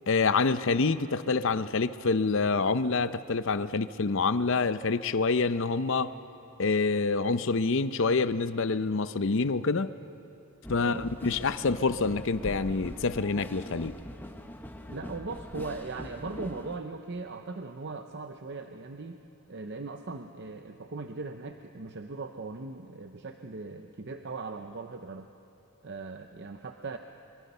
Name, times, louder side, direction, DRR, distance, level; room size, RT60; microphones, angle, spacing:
voice 1, 0.1-6.1 6.6-9.9 10.7-13.9, left 4 dB, 55° left, 13 dB, 0.6 m, -27 dB
sound 1, 10.6-16.8, equal, 10° left, 0.8 m, -42 dB
voice 2, 10.8-11.1 14.9-19.2 19.5-25.3 25.8-27.0, right 3 dB, 50° right, 6 dB, 0.7 m, -39 dB
25.0 x 22.5 x 5.6 m, 2.7 s
head